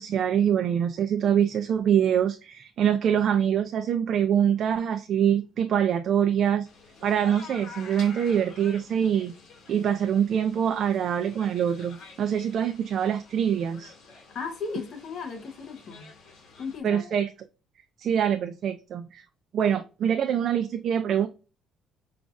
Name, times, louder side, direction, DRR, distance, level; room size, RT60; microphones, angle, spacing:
voice 1, 0.0-6.7 7.0-9.3 9.7-13.9 16.8-17.3 18.0-19.2 19.5-21.3, right 9 dB, 45° right, 0.3 m, -24 dB
sound 1, 6.6-16.8, left 4 dB, 65° left, 1.7 m, -49 dB
voice 2, 14.3-16.1 16.6-17.1, left 5 dB, 40° left, 0.8 m, -36 dB
5.1 x 2.3 x 2.5 m
cardioid pair, 160°, 0 cm